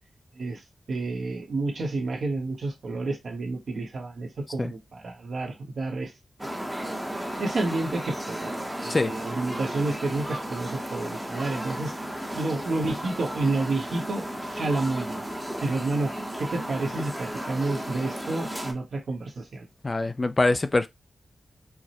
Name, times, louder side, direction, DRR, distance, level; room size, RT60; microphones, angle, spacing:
voice 1, 0.9-6.1 6.5-6.6 7.4-11.9 12.3-15.2 15.6-16.1 16.4-19.7, right 2 dB, 65° right, 1.1 m, -30 dB
sound 1, 6.4-18.7, right 1 dB, 5° right, 0.7 m, -34 dB
voice 2, 19.8-20.9, left 2 dB, 25° left, 0.3 m, -23 dB
4.7 x 2.1 x 2.8 m
wide cardioid pair, 140°, 0 cm